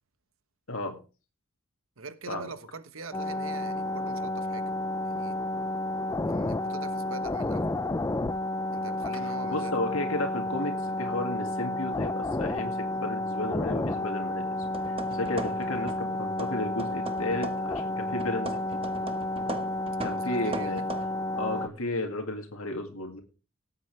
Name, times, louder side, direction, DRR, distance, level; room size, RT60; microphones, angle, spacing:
voice 1, 2.0-4.7 5.0-5.4 6.2-7.7 8.7-9.8 20.2-20.8, right 3 dB, 75° right, 1.2 m, -43 dB
sound 1, 3.1-21.7, left 1 dB, 15° left, 0.5 m, -31 dB
voice 2, 9.4-18.6 20.0-20.8 21.3-23.2, left 2 dB, 90° left, 2.1 m, -33 dB
sound 2, 14.5-16.1 16.4-17.8 18.2-21.1, right 2 dB, 25° right, 1.2 m, -39 dB
18.0 x 8.2 x 3.3 m
head